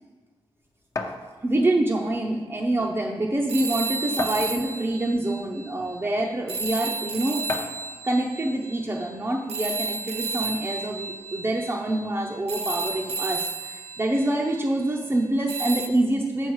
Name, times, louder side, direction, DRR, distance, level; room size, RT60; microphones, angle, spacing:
sound 1, 1.0-1.2 2.4-2.5 2.9-3.0 4.2-4.8 5.7-5.8 7.5-7.9, left 3 dB, 30° left, 0.7 m, -31 dB
voice 1, 1.4-7.4 8.0-16.5, right 1 dB, 20° right, -2 dB, 0.6 m, -26 dB
sound 2, 3.5-6.0 6.5-15.0 15.5-15.9, right 3 dB, 85° right, 0.5 m, -33 dB
7.9 x 5.5 x 4.7 m, 1.3 s
wide cardioid pair, 105°, 10 cm